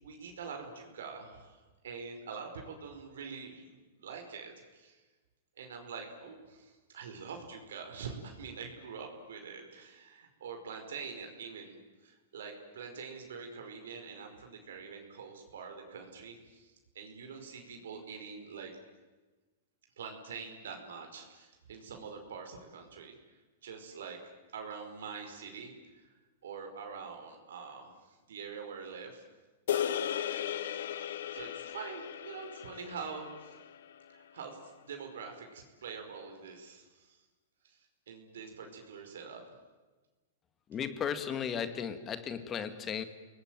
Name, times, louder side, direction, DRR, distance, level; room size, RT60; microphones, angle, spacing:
voice 1, 0.0-3.7 4.0-5.0 5.6-18.7 20.0-23.1 23.6-24.2 24.5-26.0 26.4-29.2 30.3-30.7 31.3-33.6 34.1-37.2 37.6-37.8 38.1-39.4, right 5 dB, 80° right, 5.0 m, -45 dB
sound 1, 29.7-34.1, left 10 dB, 75° left, 1.4 m, -36 dB
voice 2, 40.7-43.0, left 8 dB, 25° left, 1.8 m, -35 dB
29.5 x 19.5 x 9.1 m
hypercardioid pair, 130°, 0 cm